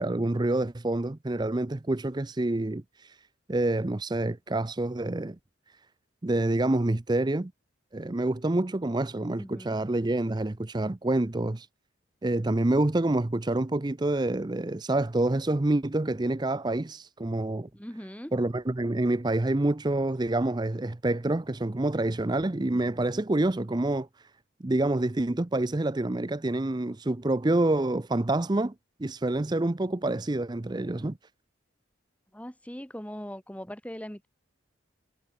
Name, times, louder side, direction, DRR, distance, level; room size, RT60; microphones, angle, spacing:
voice 1, 0.0-3.2 3.5-5.4 6.2-7.5 7.9-11.7 12.2-17.7 18.3-24.3 24.6-28.7 29.0-31.2, right 2 dB, 20° right, 0.5 m, -27 dB
voice 2, 9.3-9.8 17.7-18.3 32.3-34.3, equal, 5° left, 1.6 m, -40 dB
head